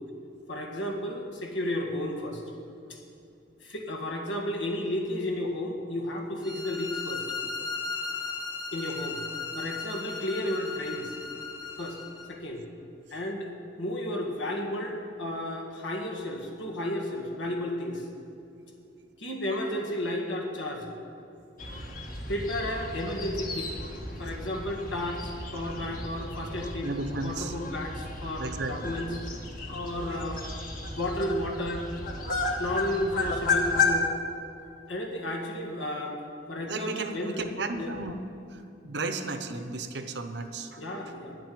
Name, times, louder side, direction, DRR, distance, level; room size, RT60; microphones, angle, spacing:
voice 1, 0.5-2.4 2.9-3.0 3.6-7.2 8.7-9.2 9.5-11.2 11.8-12.0 12.3-12.6 13.1-13.5 13.8-18.1 19.2-20.9 22.3-23.7 24.2-26.9 27.2-29.2 29.7-30.4 30.8-31.9 32.6-34.1 34.9-36.2 36.5-37.5 37.7-38.0 40.8-41.4, left 1 dB, 90° left, 0 dB, 1.9 m, -33 dB
sound 1, 6.4-12.3, left 4 dB, 20° left, 1.0 m, -36 dB
sound 2, 21.6-33.9, left 4 dB, 50° left, 1.4 m, -33 dB
voice 2, 26.8-27.5 28.4-28.9 29.7-29.8 36.7-38.2 38.5-40.8, right 3 dB, 65° right, 7 dB, 0.9 m, -34 dB
9.7 x 7.7 x 9.4 m, 2.7 s
head